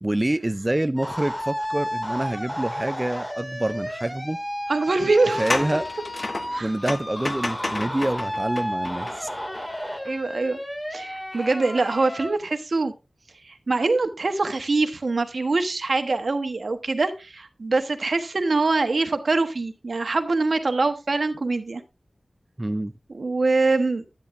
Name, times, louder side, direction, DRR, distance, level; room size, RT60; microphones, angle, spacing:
voice 1, 0.0-4.4 5.2-5.9 6.6-9.3 22.6-22.9, right 1 dB, 25° right, 0.4 m, -26 dB
sound 1, 1.0-12.3, equal, 20° left, 2.4 m, -32 dB
sound 2, 3.1-3.2 3.7-3.8 5.1-9.6 10.0-10.1, left 2 dB, 50° left, 0.9 m, -32 dB
voice 2, 4.7-5.5 6.5-6.7 10.1-10.6 10.9-12.9 13.5-21.8 23.1-24.0, right 3 dB, 70° right, 1.1 m, -24 dB
10.0 x 10.0 x 2.6 m
wide cardioid pair, 50°, 0 cm